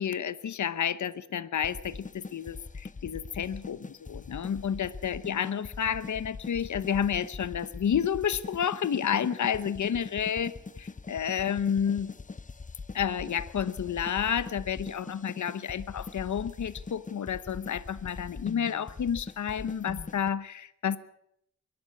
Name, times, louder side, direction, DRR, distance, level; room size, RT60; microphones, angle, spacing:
voice 1, 0.0-12.1 12.9-21.0, left 8 dB, 80° left, 16 dB, 0.9 m, -30 dB
sound 1, 1.6-20.3, left 4 dB, 25° left, 0.7 m, -42 dB
22.5 x 12.5 x 9.4 m, 0.75 s
wide cardioid pair, 90°, 29 cm